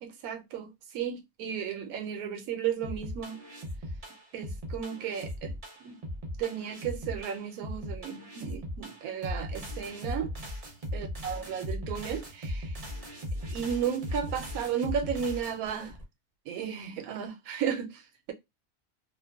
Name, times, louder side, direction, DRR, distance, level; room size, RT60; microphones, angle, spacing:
voice 1, 0.0-3.4 4.3-5.5 5.8-6.0 6.4-10.3 10.9-12.8 13.5-16.0 16.5-18.0, right 8 dB, 80° right, 1.0 m, -34 dB
sound 1, 2.8-16.0, equal, 45° right, 0.4 m, -38 dB
2.8 x 2.1 x 2.2 m
omnidirectional pair, 1.5 m